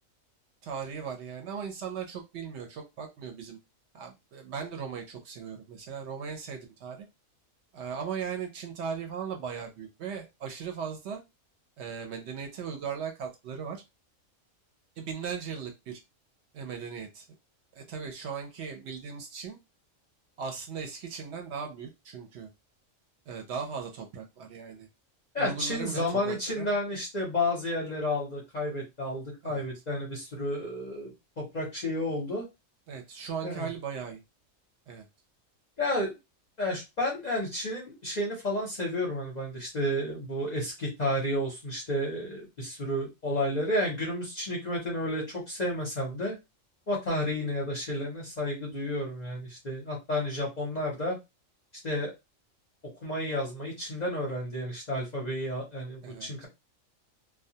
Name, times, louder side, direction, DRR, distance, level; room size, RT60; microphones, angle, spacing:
voice 1, 0.6-3.6 3.9-7.1 7.7-11.2 11.8-13.8 15.0-16.0 16.5-17.3 17.7-19.6 20.4-22.5 23.3-24.9 25.4-26.7 29.4-29.6 32.9-34.2 34.9-35.1 56.0-56.5, right 6 dB, 65° right, 4 dB, 0.8 m, -38 dB
voice 2, 25.3-32.4 33.4-33.7 35.8-36.1 36.6-46.4 46.9-51.2 51.8-52.1 53.0-56.5, left 1 dB, 45° left, -2 dB, 0.6 m, -31 dB
2.2 x 2.2 x 2.7 m, 0.23 s
omnidirectional pair, 1.4 m